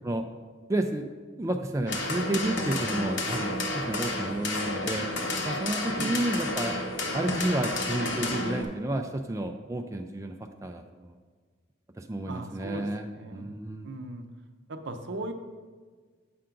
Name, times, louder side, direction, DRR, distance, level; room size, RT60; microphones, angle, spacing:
voice 1, 0.7-1.1 1.4-5.1 5.4-6.8 7.1-10.4 10.6-11.2 12.0-13.9, right 1 dB, 15° right, 4 dB, 0.3 m, -31 dB
sound 1, 1.9-8.6, left 2 dB, 65° left, 1.0 m, -31 dB
voice 2, 12.3-13.6 13.8-14.3 14.7-15.3, right 2 dB, 65° right, 7 dB, 0.6 m, -38 dB
7.6 x 5.7 x 3.8 m, 1.5 s
head